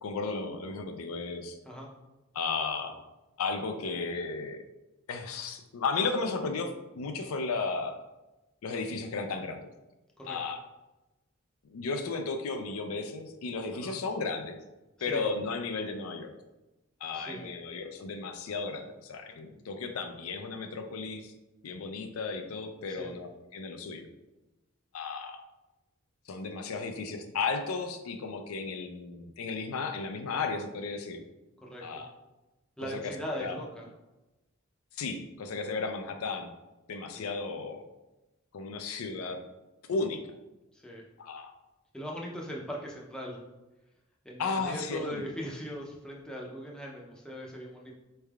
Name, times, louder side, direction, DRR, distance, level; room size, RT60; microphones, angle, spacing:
voice 1, 0.0-1.6 2.3-3.0 3.4-4.6 5.1-8.0 8.6-9.7 10.3-10.6 11.6-14.6 15.0-16.3 17.0-21.3 21.6-24.1 24.9-25.4 26.3-31.2 31.8-32.1 32.8-33.6 34.9-36.5 36.9-37.8 38.5-39.4 39.9-40.3 41.2-41.5 44.4-45.2, left 4 dB, 85° left, 6 dB, 0.4 m, -34 dB
voice 2, 17.1-17.5 22.9-23.1 31.6-32.0 32.8-33.9 37.1-37.3 40.7-41.0 41.9-43.4 44.2-47.9, equal, 5° left, -2 dB, 0.5 m, -40 dB
4.2 x 3.3 x 2.3 m, 1.0 s
head